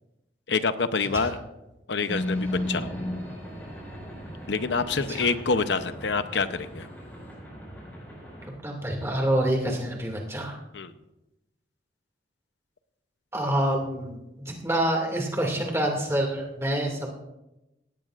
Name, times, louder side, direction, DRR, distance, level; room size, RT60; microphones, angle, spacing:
voice 1, 0.5-1.4 1.9-2.9 4.5-6.9 10.7-10.9, left 4 dB, 75° left, 11 dB, 0.8 m, -26 dB
sound 1, 2.1-8.5, left 1 dB, 10° left, 5.2 m, -36 dB
voice 2, 8.6-10.6 13.3-17.1, right 1 dB, 15° right, 0 dB, 2.3 m, -27 dB
17.5 x 17.0 x 2.5 m, 0.95 s
head